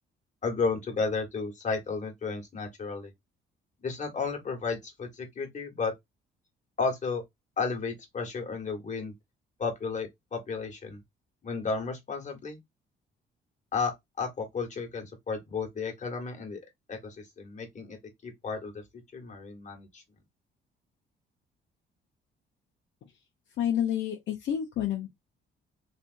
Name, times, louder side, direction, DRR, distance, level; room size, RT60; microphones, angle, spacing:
voice 1, 0.4-3.1 3.8-5.9 6.8-7.2 7.6-9.1 9.6-11.0 11.4-12.6 13.7-16.6 16.9-18.0 18.2-18.8 19.1-20.0, left 4 dB, 35° left, 1.6 m, -33 dB
voice 2, 23.6-25.1, left 10 dB, 70° left, 0.9 m, -29 dB
3.4 x 2.9 x 2.6 m
cardioid pair, 90°, 20 cm